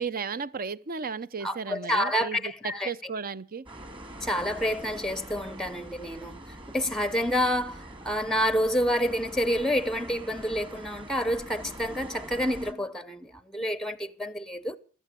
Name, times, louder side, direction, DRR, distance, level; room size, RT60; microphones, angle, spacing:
voice 1, 0.0-3.7, right 5 dB, 40° right, 0.7 m, -34 dB
voice 2, 1.4-2.9 4.2-14.8, equal, ahead, 0.8 m, -28 dB
sound 1, 3.7-12.7, right 1 dB, 25° right, 1.9 m, -44 dB
15.0 x 13.0 x 6.7 m
head